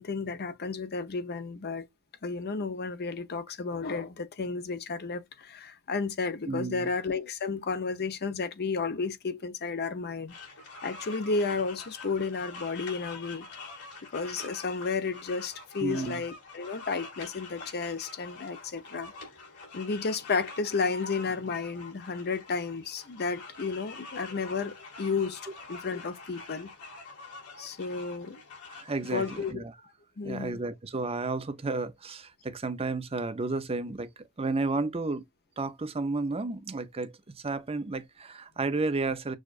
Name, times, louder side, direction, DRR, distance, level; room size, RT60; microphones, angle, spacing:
voice 1, 0.0-1.9 2.2-10.3 10.8-13.8 14.1-19.1 19.7-25.4 25.7-26.7 27.6-28.4 29.1-29.6 30.2-30.6, left 4 dB, 45° left, 0.7 m, -32 dB
voice 2, 6.5-6.9 15.8-16.2 28.7-29.7 30.2-34.1 34.4-35.2 35.6-37.1 37.4-39.4, right 3 dB, 25° right, 0.6 m, -32 dB
sound 1, 10.3-29.5, left 3 dB, 80° left, 2.5 m, -46 dB
6.3 x 2.4 x 2.4 m
head